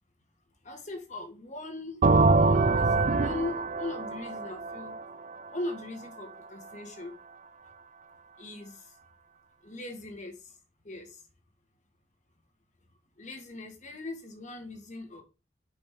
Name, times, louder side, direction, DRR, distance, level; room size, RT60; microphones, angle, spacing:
voice 1, 0.6-5.0 5.5-7.2 8.4-8.9 9.6-10.6 10.8-11.2 13.2-15.2, left 2 dB, 40° left, 1.5 m, -40 dB
sound 1, 2.0-5.7, right 3 dB, 40° right, 0.4 m, -24 dB
5.3 x 4.9 x 5.0 m
head